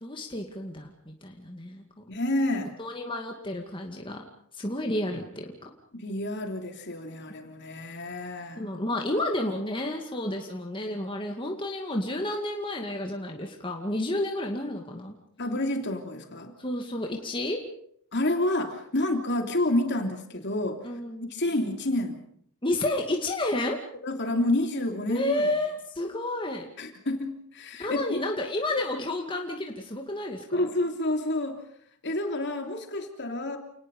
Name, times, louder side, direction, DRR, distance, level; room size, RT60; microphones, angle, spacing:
voice 1, 0.0-1.8 2.8-4.2 4.5-5.7 8.6-15.2 16.6-17.6 20.8-21.3 22.6-23.8 25.1-26.7 27.8-30.7, left 1 dB, 25° left, 1 dB, 2.2 m, -31 dB
voice 2, 2.1-2.8 5.9-8.7 15.4-16.5 18.1-20.8 21.2-22.2 24.0-25.5 26.8-28.2 30.5-31.6 32.0-33.6, left 1 dB, 55° left, 4 dB, 3.1 m, -29 dB
29.0 x 19.5 x 5.4 m, 0.64 s
head